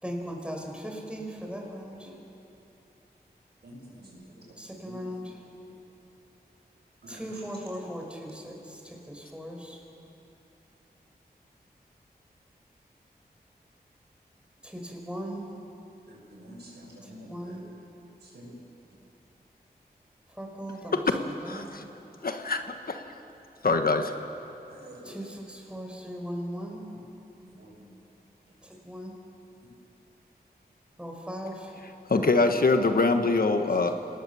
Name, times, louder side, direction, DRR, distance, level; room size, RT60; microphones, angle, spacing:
voice 1, 0.0-2.1 4.6-5.4 7.1-9.8 14.6-15.5 17.0-17.7 20.3-21.8 25.0-26.9 28.6-29.2 31.0-31.8, equal, 5° right, 0 dB, 5.1 m, -38 dB
voice 2, 3.6-4.2 7.0-7.3 16.1-17.6 18.3-18.5 24.7-25.2 27.6-27.9, right 1 dB, 80° right, -2 dB, 6.4 m, -48 dB
voice 3, 21.5-21.8 22.2-23.0 23.6-24.1 32.1-33.9, left 3 dB, 60° left, 6 dB, 1.5 m, -24 dB
26.0 x 19.0 x 7.2 m, 2.9 s
cardioid pair, 50°, 17 cm